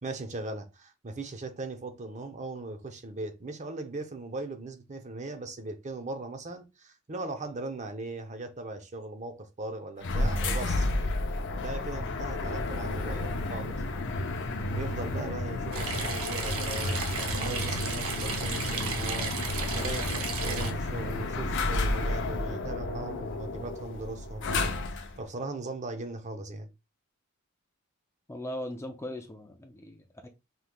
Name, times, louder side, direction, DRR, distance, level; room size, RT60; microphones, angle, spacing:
voice 1, 0.0-10.9 11.5-13.8 14.7-19.3 19.7-24.5 24.9-26.7, right 2 dB, 35° right, 0.7 m, -38 dB
sound 1, 10.0-25.2, left 2 dB, 60° left, 0.7 m, -31 dB
sound 2, 15.7-20.7, right 5 dB, 85° right, 0.9 m, -34 dB
voice 2, 28.3-30.3, left 1 dB, 15° left, 0.5 m, -39 dB
5.5 x 3.1 x 2.3 m
head